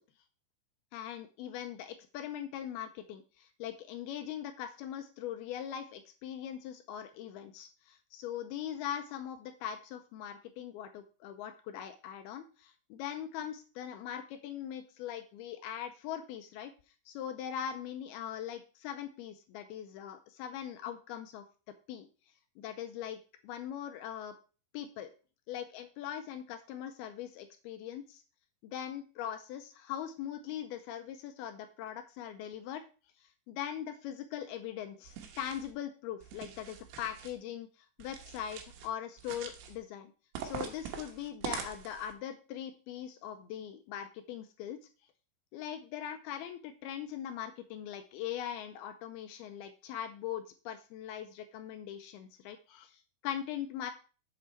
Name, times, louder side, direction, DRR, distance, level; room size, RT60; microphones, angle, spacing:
voice 1, 0.9-16.7 17.1-21.4 21.9-22.1 22.6-24.3 24.7-25.1 25.5-28.2 28.6-32.8 33.2-40.1 40.4-44.8 45.5-53.9, left 10 dB, 80° left, 8 dB, 2.3 m, -41 dB
sound 1, 35.0-35.7 36.2-37.3 38.0-38.9 39.2-39.8 40.3-42.1, right 8 dB, 80° right, 3.3 m, -43 dB
7.2 x 7.0 x 4.4 m, 0.35 s
omnidirectional pair, 5.0 m